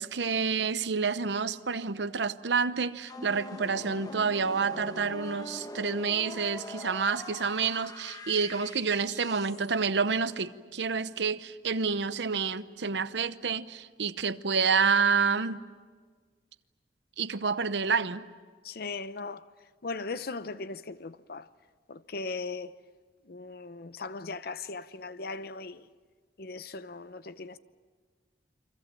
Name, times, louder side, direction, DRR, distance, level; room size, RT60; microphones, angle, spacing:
voice 1, 0.0-15.6 17.2-18.3, right 5 dB, 80° right, 0.9 m, -28 dB
sound 1, 3.0-9.7, left 1 dB, 20° left, 1.2 m, -43 dB
voice 2, 18.6-19.5 19.8-21.5 21.9-22.7 23.2-25.9 26.4-27.6, left 3 dB, 60° left, 0.8 m, -38 dB
29.5 x 25.0 x 7.6 m
head